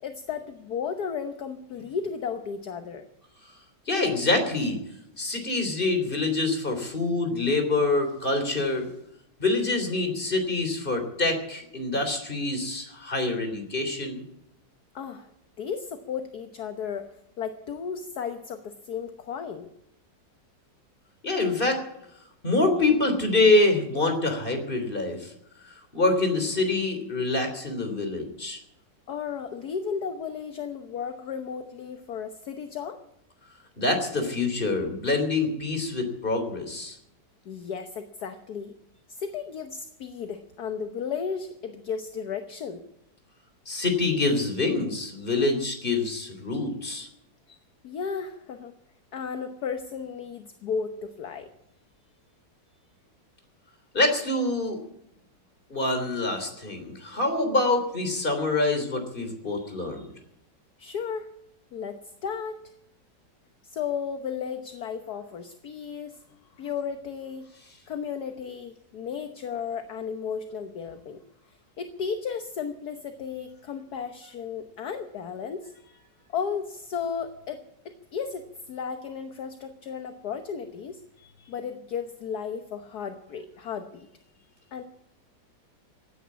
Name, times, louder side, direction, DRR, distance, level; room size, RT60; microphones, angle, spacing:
voice 1, 0.0-3.0 14.9-15.3 15.6-19.7 29.1-33.0 37.4-38.8 39.1-42.8 47.8-48.7 49.1-51.5 60.8-61.3 61.7-62.6 63.6-66.2 66.6-67.5 67.9-71.2 71.5-75.7 76.3-77.6 77.8-81.0 81.5-84.1 84.7-84.8, left 6 dB, 60° left, 7 dB, 1.6 m, -34 dB
voice 2, 3.9-4.8 5.2-8.9 9.4-14.2 21.2-21.8 22.4-25.3 25.7-28.6 33.8-37.0 43.7-47.1 53.9-54.8 55.7-60.1, left 2 dB, 30° left, 5 dB, 3.5 m, -26 dB
16.5 x 10.5 x 8.4 m, 0.80 s
omnidirectional pair, 1.9 m